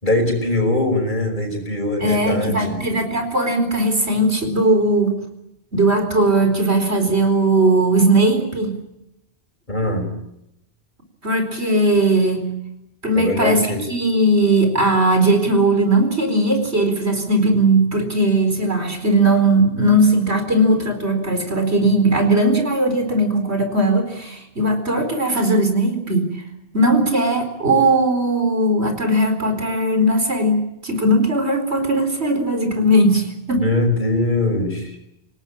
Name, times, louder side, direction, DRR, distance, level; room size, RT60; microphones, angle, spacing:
voice 1, 0.0-2.8 9.7-10.1 13.2-13.8 33.6-35.0, left 2 dB, 45° left, 4 dB, 5.6 m, -21 dB
voice 2, 2.0-5.2 5.7-8.8 11.2-12.5 13.0-13.6 13.9-26.3 26.7-33.6, right 1 dB, 75° right, 6 dB, 4.8 m, -18 dB
26.5 x 18.5 x 8.7 m, 0.84 s
omnidirectional pair, 1.1 m